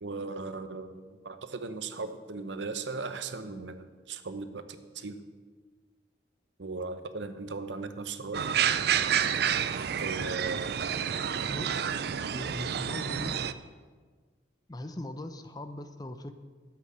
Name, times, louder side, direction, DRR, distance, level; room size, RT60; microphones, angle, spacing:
voice 1, 0.0-5.3 6.6-8.5 10.0-10.7, right 3 dB, 80° right, 10 dB, 0.8 m, -37 dB
sound 1, 8.3-13.5, right 8 dB, 60° right, 0.5 m, -29 dB
voice 2, 11.5-12.0 12.3-13.4 14.7-16.3, left 1 dB, 20° left, 9 dB, 0.6 m, -40 dB
12.0 x 8.0 x 6.7 m, 1.5 s
head